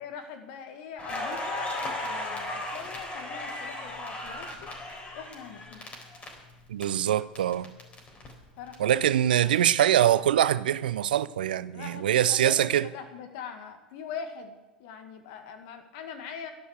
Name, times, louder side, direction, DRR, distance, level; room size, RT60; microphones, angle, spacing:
voice 1, 0.0-4.8 5.1-5.8 8.6-8.9 9.4-9.6 11.7-16.5, left 7 dB, 55° left, 2.0 m, -42 dB
Crackle, 1.0-6.8 7.1-8.9, left 1 dB, 25° left, 4.1 m, -36 dB
voice 2, 6.7-7.7 8.8-12.9, right 11 dB, 70° right, 0.5 m, -23 dB
12.5 x 11.0 x 6.5 m
figure-of-eight pair, 85°, 5 cm